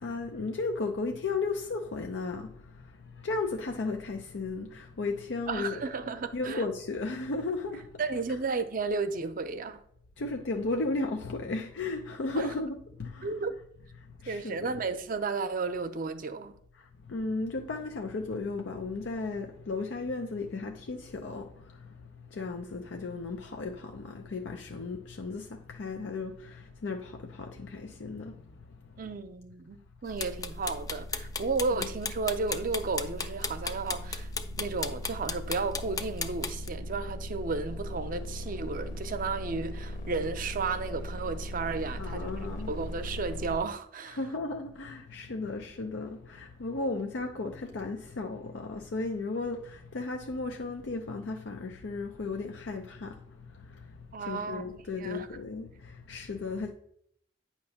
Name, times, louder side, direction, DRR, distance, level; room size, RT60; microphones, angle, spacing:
voice 1, 0.0-5.9 6.3-8.4 10.2-13.5 13.9-14.9 16.7-28.9 31.8-31.9 42.0-42.7 44.0-56.7, left 3 dB, 85° left, 0.5 m, -35 dB
voice 2, 5.5-6.6 8.0-9.8 12.4-12.5 13.2-13.6 14.3-16.5 29.0-34.3 34.6-42.3 42.7-44.2 54.1-54.7 55.0-55.3, right 4 dB, 50° right, 0.6 m, -33 dB
sound 1, 30.1-43.6, equal, 45° left, 0.9 m, -39 dB
sound 2, 30.2-36.7, left 5 dB, 20° left, 0.4 m, -34 dB
8.7 x 3.0 x 5.7 m
head